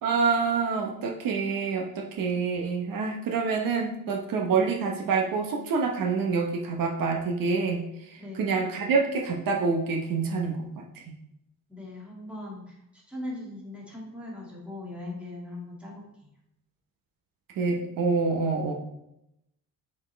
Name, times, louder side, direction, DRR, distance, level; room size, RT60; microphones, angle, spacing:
voice 1, 0.0-10.8 17.6-18.8, right 4 dB, 75° right, 1 dB, 1.0 m, -27 dB
voice 2, 8.2-8.5 11.7-16.1, left 1 dB, 5° right, -4 dB, 2.1 m, -39 dB
7.3 x 4.5 x 3.3 m, 0.81 s
cardioid pair, 125°, 34 cm